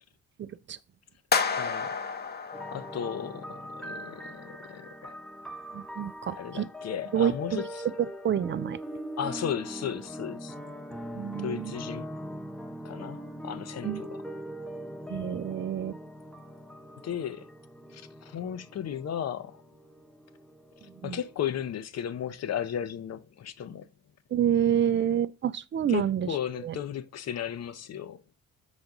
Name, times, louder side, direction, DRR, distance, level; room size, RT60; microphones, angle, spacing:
voice 1, 0.4-0.8 5.7-6.7 7.1-7.6 8.2-8.8 11.1-11.7 13.8-14.0 15.1-16.0 21.0-21.2 24.3-26.3 26.6-26.7, right 9 dB, 40° right, 0.4 m, -28 dB
sound 1, 1.3-3.5, left 5 dB, 30° left, 0.9 m, -30 dB
voice 2, 1.4-1.9 2.7-5.2 6.3-7.9 9.2-10.6 11.4-12.1 12.8-14.2 17.0-17.5 17.9-19.6 21.0-23.9 25.9-28.2, left 9 dB, 60° left, 0.8 m, -35 dB
sound 2, 2.5-21.4, equal, 5° left, 1.0 m, -41 dB
5.1 x 4.1 x 5.9 m
cardioid pair, 90°, 30 cm